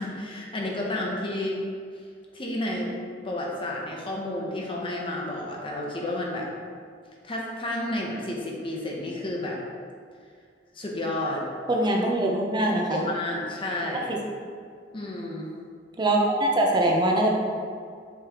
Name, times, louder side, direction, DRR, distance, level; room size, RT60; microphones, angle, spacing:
voice 1, 0.0-1.6 2.3-2.9 3.2-6.5 7.2-9.6 10.7-11.4 12.6-14.1 14.9-15.6, left 1 dB, 30° left, -2 dB, 0.8 m, -31 dB
voice 2, 11.7-13.0 14.1-14.2 16.0-17.3, right 1 dB, 25° right, -1 dB, 0.7 m, -23 dB
6.8 x 4.8 x 3.0 m, 2.2 s
head